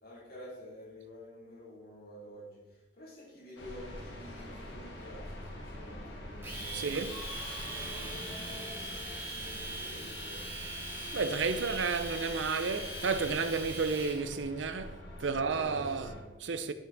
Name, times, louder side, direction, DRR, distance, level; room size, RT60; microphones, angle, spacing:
voice 1, 0.0-7.1 7.6-10.5 15.2-16.5, left 1 dB, 55° left, 3.3 m, -50 dB
sound 1, 3.6-16.2, left 1 dB, 80° left, 1.7 m, -45 dB
Domestic sounds home sounds, 6.4-14.2, right 1 dB, 10° right, 2.5 m, -41 dB
voice 2, 6.7-7.1 11.1-16.1 16.4-16.7, right 4 dB, 80° right, 0.7 m, -32 dB
sound 2, 7.0-10.0, equal, 10° left, 2.1 m, -49 dB
11.5 x 6.4 x 3.6 m
head